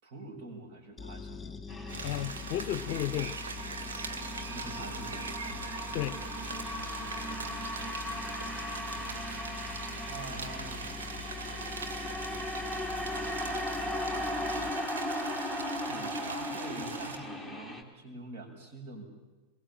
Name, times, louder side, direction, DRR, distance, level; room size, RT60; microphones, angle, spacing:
voice 1, 0.0-1.6 4.5-5.6 7.0-7.5 9.9-10.9 15.8-19.0, right 2 dB, 50° right, 7.6 m, -45 dB
sound 1, 1.0-14.7, left 5 dB, 10° left, 4.9 m, -44 dB
sound 2, 1.7-17.8, left 1 dB, 15° right, 3.4 m, -38 dB
sound 3, 1.9-17.2, right 5 dB, 65° right, 2.2 m, -41 dB
voice 2, 2.0-3.4 5.9-6.2, left 12 dB, 45° left, 0.8 m, -33 dB
25.0 x 22.5 x 8.9 m
figure-of-eight pair, 90°, 0 cm